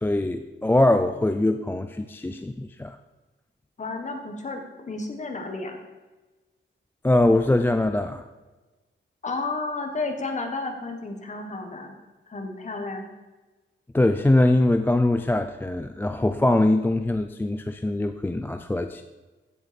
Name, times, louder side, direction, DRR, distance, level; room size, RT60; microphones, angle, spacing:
voice 1, 0.0-3.0 7.0-8.2 13.9-19.0, left 1 dB, 10° left, 7 dB, 0.4 m, -22 dB
voice 2, 3.8-5.8 9.2-11.9 12.3-13.1, left 3 dB, 35° left, 4 dB, 1.5 m, -32 dB
15.5 x 6.4 x 5.2 m, 1.2 s
wide cardioid pair, 180°, 20 cm